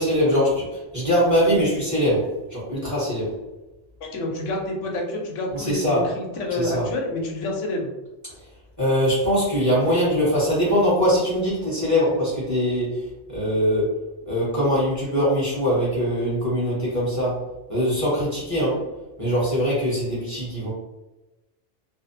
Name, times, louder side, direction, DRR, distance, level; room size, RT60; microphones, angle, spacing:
voice 1, 0.0-3.3 5.5-6.1 6.5-6.9 8.8-14.0 14.3-17.4 17.7-18.8 19.2-20.7, equal, 15° right, -8 dB, 0.9 m, -22 dB
voice 2, 4.0-7.9, left 1 dB, 85° left, 0 dB, 1.0 m, -28 dB
2.5 x 2.0 x 2.6 m, 1.0 s
omnidirectional pair, 1.2 m